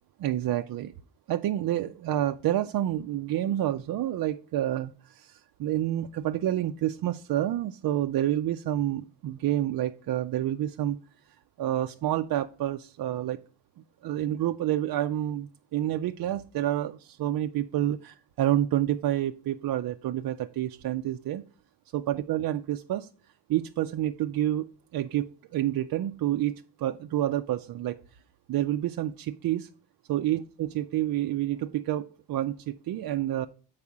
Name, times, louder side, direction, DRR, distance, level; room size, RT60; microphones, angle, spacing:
voice 1, 0.2-0.9 1.3-11.0 11.6-13.4 14.0-21.4 21.9-23.1 23.5-28.2 28.5-29.7 30.1-33.5, right 12 dB, 60° right, 6 dB, 0.5 m, -29 dB
7.1 x 4.8 x 4.8 m, 0.39 s
cardioid pair, 65°, 39 cm